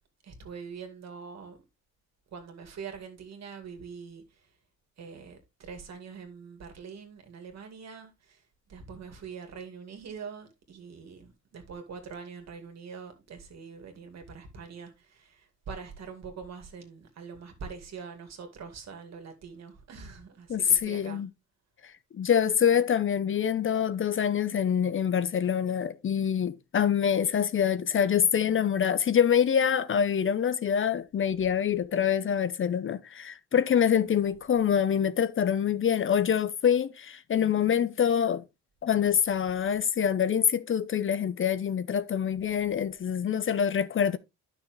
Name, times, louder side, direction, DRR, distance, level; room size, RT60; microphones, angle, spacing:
voice 1, 0.2-1.6 2.3-4.5 5.0-8.4 8.7-21.3 22.7-22.8, right 5 dB, 60° right, 2.4 m, -44 dB
voice 2, 20.5-21.3 22.1-38.4 38.8-44.2, left 8 dB, 45° left, 0.7 m, -25 dB
10.0 x 6.2 x 3.2 m
cardioid pair, 90°, 30 cm